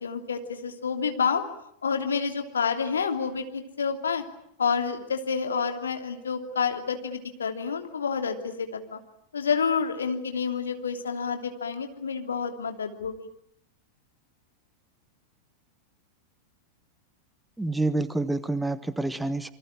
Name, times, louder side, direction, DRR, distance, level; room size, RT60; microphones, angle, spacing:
voice 1, 0.0-1.4 1.8-4.2 4.6-9.0 9.3-13.3, left 6 dB, 70° left, 6 dB, 3.0 m, -29 dB
voice 2, 17.6-19.5, right 2 dB, 5° right, 15 dB, 1.3 m, -28 dB
27.5 x 24.5 x 8.9 m, 0.70 s
figure-of-eight pair, 90°, 0 cm